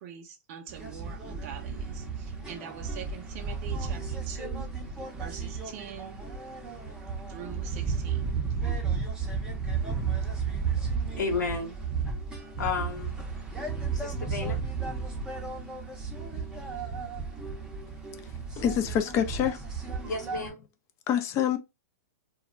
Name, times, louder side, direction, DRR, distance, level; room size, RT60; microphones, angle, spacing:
voice 1, 0.0-4.7 5.2-6.2 7.3-8.4, right 8 dB, 45° right, 0.5 m, -43 dB
sound 1, 0.7-20.5, right 5 dB, 10° right, 0.7 m, -33 dB
voice 2, 11.2-11.7 12.6-13.2 13.9-14.6 20.0-20.6, left 4 dB, 85° left, 1.0 m, -32 dB
voice 3, 18.6-19.6 21.1-21.6, left 9 dB, 30° left, 0.5 m, -26 dB
2.2 x 2.0 x 3.7 m
hypercardioid pair, 130°, 9 cm